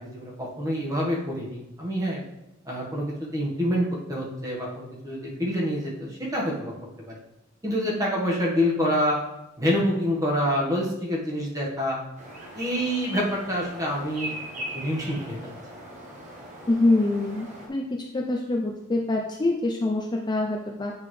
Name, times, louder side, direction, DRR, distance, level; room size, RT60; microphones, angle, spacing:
voice 1, 0.0-2.2 2.6-6.7 7.0-7.2 7.6-9.2 9.6-12.0 12.5-14.3 14.7-15.5, equal, 15° right, -4 dB, 1.4 m, -27 dB
sound 1, 12.2-17.7, equal, 35° right, 1.2 m, -39 dB
voice 2, 16.7-17.8 18.1-20.9, left 2 dB, 20° left, 1 dB, 0.4 m, -25 dB
8.7 x 4.0 x 3.2 m, 0.91 s
head